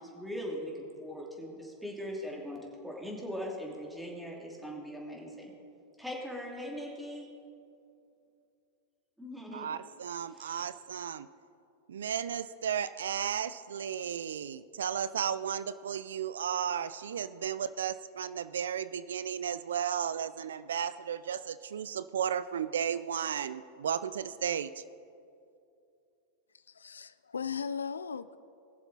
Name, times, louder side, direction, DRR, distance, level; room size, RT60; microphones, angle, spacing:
voice 1, 0.0-5.5 6.0-7.2 9.2-9.7 10.3-10.6, equal, 5° right, -2 dB, 2.8 m, -40 dB
voice 2, 9.5-11.3 11.9-24.8, right 8 dB, 75° right, 15 dB, 0.3 m, -34 dB
voice 3, 26.7-28.4, left 6 dB, 85° left, 16 dB, 0.3 m, -37 dB
21.0 x 7.2 x 4.1 m, 2.5 s
hypercardioid pair, 100°, 0 cm